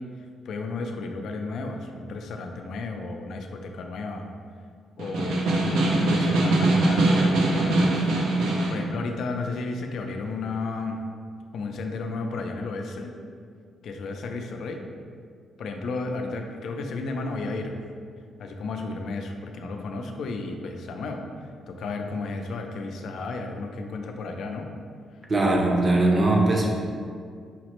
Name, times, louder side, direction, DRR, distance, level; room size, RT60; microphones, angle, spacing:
voice 1, 0.5-4.3 5.0-8.1 8.7-11.0 11.5-13.1 13.8-14.8 15.6-17.8 18.4-21.2 21.7-24.7, left 3 dB, 70° left, 4 dB, 0.3 m, -33 dB
Snare drum, 5.0-8.8, right 2 dB, 90° right, 0.5 m, -22 dB
voice 2, 25.3-26.7, right 2 dB, 30° right, 0 dB, 0.6 m, -20 dB
5.6 x 2.0 x 2.9 m, 2.1 s
cardioid pair, 100°, 0 cm